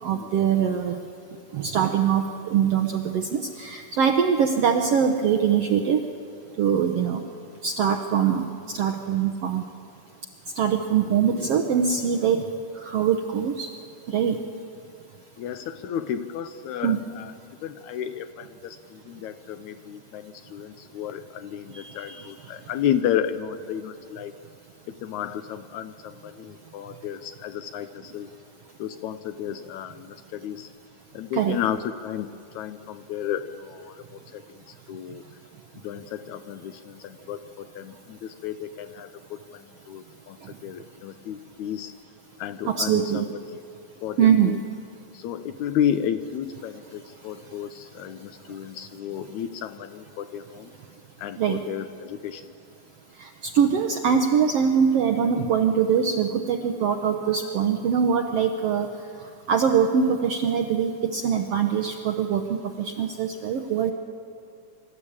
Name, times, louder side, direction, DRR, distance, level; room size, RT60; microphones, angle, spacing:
voice 1, 0.0-1.0 1.5-6.0 6.6-7.2 7.6-9.6 10.6-12.5 12.8-13.7 14.1-14.4 16.8-17.0 21.7-22.3 31.3-31.6 42.7-43.3 44.2-44.6 51.4-51.6 53.2-58.9 59.5-63.9, right 7 dB, 70° right, 4 dB, 1.4 m, -23 dB
voice 2, 15.4-17.3 17.6-24.3 24.9-28.3 28.8-30.7 31.1-34.0 34.3-34.4 34.9-35.2 35.8-41.9 42.4-43.4 44.0-44.6 45.1-50.7 51.2-52.5 57.2-57.5, left 9 dB, 75° left, 10 dB, 1.8 m, -32 dB
24.5 x 13.5 x 8.7 m, 2.4 s
omnidirectional pair, 3.8 m